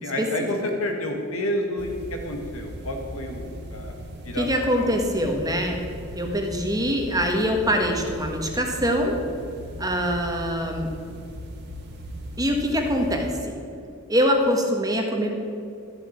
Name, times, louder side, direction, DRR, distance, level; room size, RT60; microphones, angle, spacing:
voice 1, 0.0-3.9 4.2-4.5 4.8-4.9, left 1 dB, 65° left, 2 dB, 2.1 m, -29 dB
sound 1, 1.8-13.3, equal, 50° right, 1.9 m, -38 dB
voice 2, 4.4-5.8 6.1-9.2 9.8-10.9 12.4-13.6 14.1-15.3, equal, 15° right, 2 dB, 1.5 m, -24 dB
13.5 x 7.6 x 8.9 m, 2.5 s
head